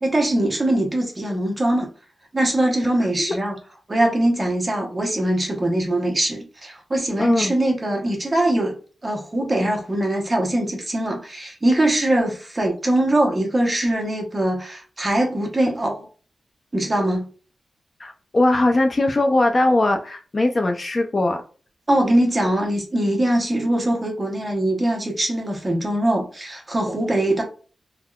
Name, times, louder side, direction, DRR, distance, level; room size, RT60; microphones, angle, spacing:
voice 1, 0.0-1.9 2.3-3.5 3.9-8.7 9.0-16.0 16.7-17.3 21.9-27.4, right 1 dB, 25° right, 0.8 m, -22 dB
voice 2, 7.2-7.6 18.0-21.4, left 2 dB, 35° left, 0.3 m, -20 dB
3.4 x 2.2 x 2.2 m
wide cardioid pair, 120°, 0 cm